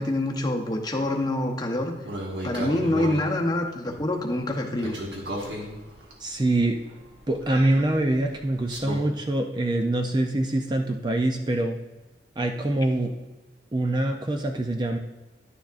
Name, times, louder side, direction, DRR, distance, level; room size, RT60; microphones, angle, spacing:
voice 1, 0.0-1.9 2.4-5.0, left 1 dB, 20° left, 1 dB, 0.9 m, -26 dB
sound 1, 2.0-3.3 4.8-9.0, equal, 65° right, 1.6 m, -35 dB
voice 2, 6.2-6.8 7.3-11.8 12.4-13.1 13.7-15.0, right 1 dB, 25° right, 4 dB, 0.4 m, -24 dB
10.5 x 7.0 x 2.5 m, 1.1 s
head